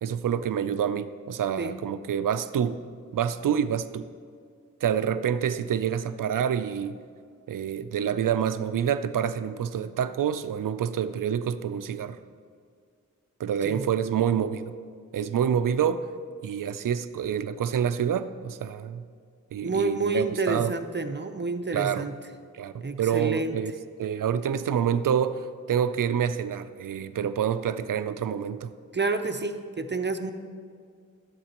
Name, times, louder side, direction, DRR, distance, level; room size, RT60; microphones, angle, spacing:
voice 1, 0.0-2.8 3.1-4.1 4.8-7.0 7.5-12.2 13.4-14.7 15.1-16.1 16.4-19.0 19.5-20.7 21.7-22.1 22.5-23.7 24.0-28.7, right 8 dB, 85° right, 12 dB, 0.5 m, -27 dB
voice 2, 19.6-22.2 22.7-23.6 28.9-30.3, right 3 dB, 35° right, 8 dB, 0.6 m, -29 dB
16.0 x 7.4 x 3.0 m, 2.2 s
cardioid pair, 50°, 31 cm